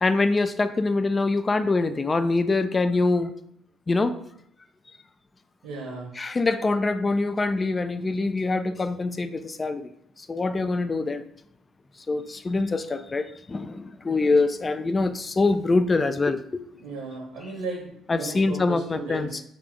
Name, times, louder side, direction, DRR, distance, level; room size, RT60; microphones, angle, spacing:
voice 1, 0.0-3.3 3.9-4.2 6.2-9.9 10.3-11.2 12.1-16.6 18.1-19.3, left 3 dB, 25° left, 11 dB, 0.3 m, -24 dB
voice 2, 5.6-6.1 16.7-19.4, right 3 dB, 65° right, -1 dB, 0.9 m, -35 dB
3.6 x 3.2 x 3.8 m, 0.71 s
figure-of-eight pair, 50°, 0 cm